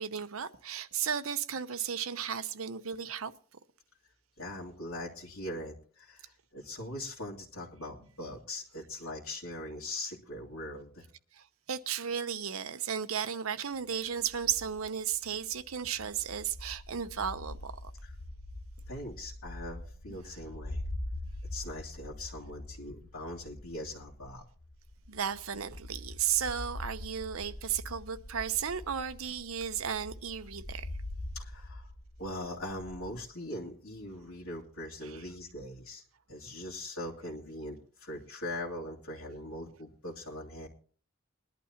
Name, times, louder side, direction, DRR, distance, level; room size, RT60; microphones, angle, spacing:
voice 1, 0.0-3.3 11.7-17.9 25.1-30.9 35.0-35.2, right 8 dB, 85° right, 0.8 m, -34 dB
voice 2, 4.4-11.1 18.0-18.1 18.9-20.8 21.5-24.5 31.3-31.9 32.2-36.0 36.3-40.7, left 1 dB, 90° left, 2.4 m, -41 dB
sound 1, 14.1-33.2, left 1 dB, 30° left, 0.9 m, -44 dB
21.5 x 11.5 x 2.9 m
head